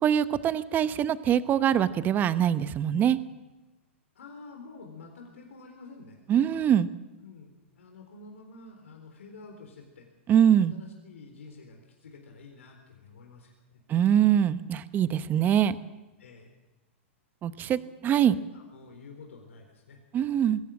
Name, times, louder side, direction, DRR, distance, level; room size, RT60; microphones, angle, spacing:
voice 1, 0.0-3.2 6.3-6.9 10.3-10.7 13.9-15.8 17.4-18.3 20.1-20.6, right 9 dB, 25° right, 13 dB, 1.0 m, -23 dB
voice 2, 4.1-6.2 7.2-10.1 10.6-13.8 16.2-16.5 17.7-17.8 18.3-20.0, left 3 dB, 85° left, 3 dB, 3.9 m, -49 dB
22.0 x 17.0 x 7.7 m, 1.1 s
hypercardioid pair, 125°, 7 cm